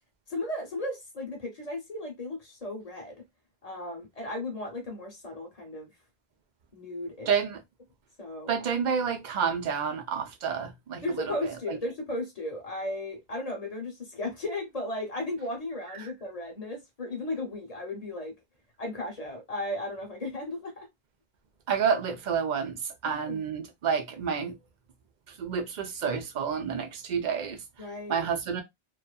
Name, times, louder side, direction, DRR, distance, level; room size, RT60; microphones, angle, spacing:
voice 1, 0.3-3.2 3.6-5.9 6.7-7.3 8.2-8.5 11.0-18.3 18.8-20.9 23.0-23.4 27.8-28.3, left 1 dB, 40° left, 0.8 m, -35 dB
voice 2, 7.3-7.6 8.5-11.2 11.7-11.8 16.0-16.1 21.7-24.5 25.4-27.6 28.1-28.6, right 6 dB, 55° right, 0.6 m, -29 dB
2.5 x 2.3 x 2.2 m
omnidirectional pair, 1.0 m